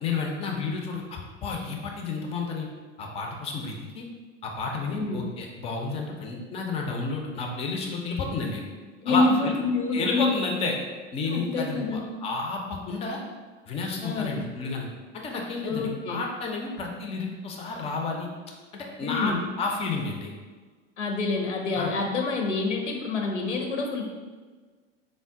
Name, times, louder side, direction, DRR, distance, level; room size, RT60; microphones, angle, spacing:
voice 1, 0.0-2.7 3.0-4.1 4.4-8.6 9.1-9.5 9.9-10.7 11.1-13.2 13.7-14.9 15.1-18.3 18.7-20.3 21.8-21.9, left 4 dB, 20° left, 1 dB, 0.3 m, -31 dB
voice 2, 4.9-5.2 9.0-10.4 11.2-12.1 14.0-14.4 15.6-16.2 19.0-19.4 21.0-24.1, left 3 dB, 80° left, 1 dB, 0.5 m, -27 dB
3.7 x 2.1 x 3.5 m, 1.4 s
figure-of-eight pair, 80°, 36 cm